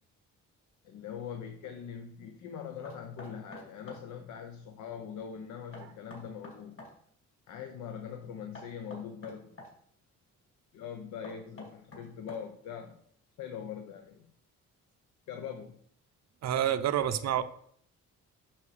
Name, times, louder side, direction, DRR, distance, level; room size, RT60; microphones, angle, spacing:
voice 1, 0.8-6.8 7.5-9.6 10.7-13.0 13.4-14.3 15.3-15.8 17.2-17.3, left 8 dB, 75° left, 6 dB, 0.8 m, -42 dB
Knock, 2.8-4.1 5.7-7.0 8.5-9.7 11.2-12.7, left 1 dB, 45° left, 2.5 m, -47 dB
voice 2, 16.4-17.4, right 10 dB, 60° right, 11 dB, 0.7 m, -28 dB
7.2 x 5.9 x 3.3 m, 0.64 s
cardioid pair, 90°, 30 cm